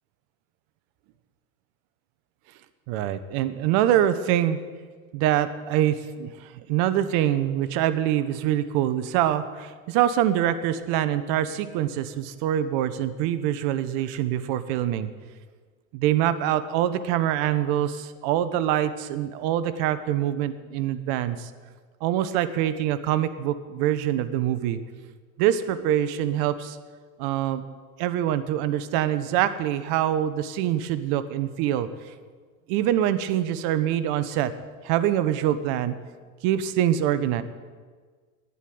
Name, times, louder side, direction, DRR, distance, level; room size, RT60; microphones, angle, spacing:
voice 1, 2.9-4.6 5.1-15.1 15.9-21.5 22.0-24.8 25.4-26.8 27.2-27.6 28.0-31.9 32.7-34.5 34.8-35.9 36.4-37.4, right 11 dB, 70° right, 13 dB, 1.0 m, -24 dB
10.5 x 8.4 x 9.4 m, 1.5 s
supercardioid pair, 90°, 40 cm